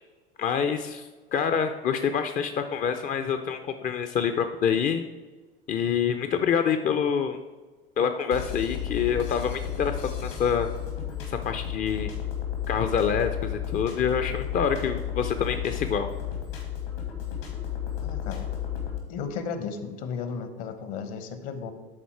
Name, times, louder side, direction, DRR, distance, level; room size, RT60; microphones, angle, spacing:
voice 1, 0.4-5.0 5.7-7.4 8.0-10.7 11.3-12.1 12.7-16.1, left 7 dB, 30° left, 8 dB, 0.5 m, -26 dB
sound 1, 8.3-19.0, left 9 dB, 70° left, 2.2 m, -33 dB
voice 2, 18.0-18.5 19.1-21.7, left 6 dB, 50° left, 9 dB, 1.1 m, -34 dB
11.5 x 4.1 x 4.6 m, 1.3 s
hypercardioid pair, 80°, 29 cm